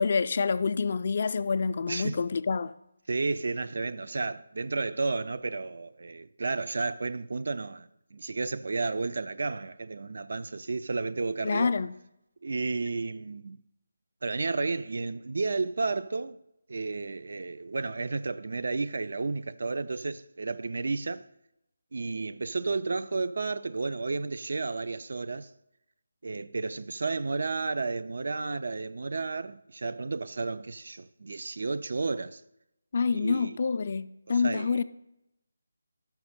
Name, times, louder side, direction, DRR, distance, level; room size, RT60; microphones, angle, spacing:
voice 1, 0.0-2.7 11.4-12.0 32.9-34.8, left 5 dB, 45° left, 0.3 m, -27 dB
voice 2, 1.9-2.2 3.1-11.7 12.4-13.6 14.2-16.4 16.7-21.3 21.9-25.5 26.2-32.4 33.1-33.6 34.3-34.8, right 3 dB, 60° right, 0.4 m, -32 dB
5.9 x 5.4 x 6.5 m
figure-of-eight pair, 155°, 0 cm